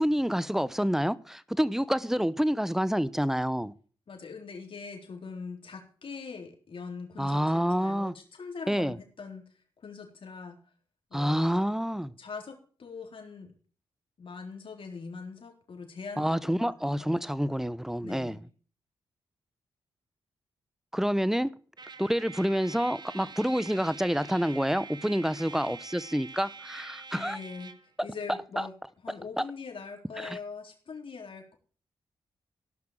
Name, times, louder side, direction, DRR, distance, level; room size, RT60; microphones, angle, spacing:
voice 1, 0.0-3.7 7.2-8.1 8.7-9.0 11.1-12.1 16.2-18.4 20.9-21.5 22.0-27.4 28.0-28.1 28.6-28.7 29.4-29.5 30.2-30.4, equal, 5° right, 0.9 m, -28 dB
voice 2, 4.1-9.4 9.8-10.6 11.1-11.6 12.2-13.5 14.2-17.1 18.0-18.4 27.1-27.7 28.0-28.7 29.0-31.5, left 5 dB, 60° left, 3.8 m, -42 dB
Trumpet, 21.8-27.9, right 5 dB, 45° right, 1.3 m, -46 dB
16.0 x 5.9 x 7.5 m
supercardioid pair, 50°, 10 cm